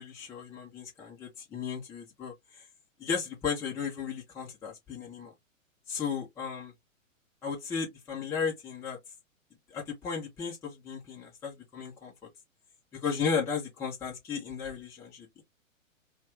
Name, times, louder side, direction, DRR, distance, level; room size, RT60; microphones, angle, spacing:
voice 1, 0.0-2.3 3.0-5.3 5.9-6.7 7.4-9.0 9.7-12.1 12.9-15.4, left 6 dB, 5° left, 0.6 m, -35 dB
2.5 x 2.4 x 3.2 m
figure-of-eight pair, 110°, 40 cm